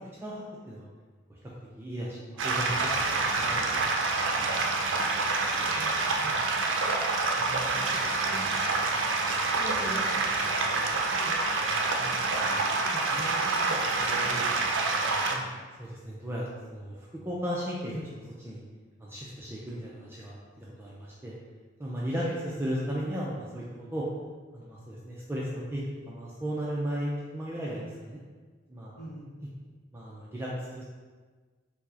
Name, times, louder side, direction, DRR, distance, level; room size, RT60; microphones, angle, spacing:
voice 1, 0.2-0.9 1.8-3.8 4.3-4.5 15.8-17.9 18.4-18.6 19.0-21.3 21.8-22.2 22.6-23.6 23.9-24.0 24.5-25.8 26.1-28.2 28.7-29.0 29.9-30.9, equal, 15° right, -6 dB, 0.3 m, -35 dB
sound 1, 2.4-15.4, right 3 dB, 80° right, 0.4 m, -27 dB
voice 2, 5.7-6.9 7.2-7.9 8.2-9.0 9.5-15.4 17.9-18.1 22.2-22.4 29.0-29.3, right 1 dB, 65° left, -8 dB, 0.8 m, -43 dB
4.5 x 2.0 x 2.7 m, 1.4 s
head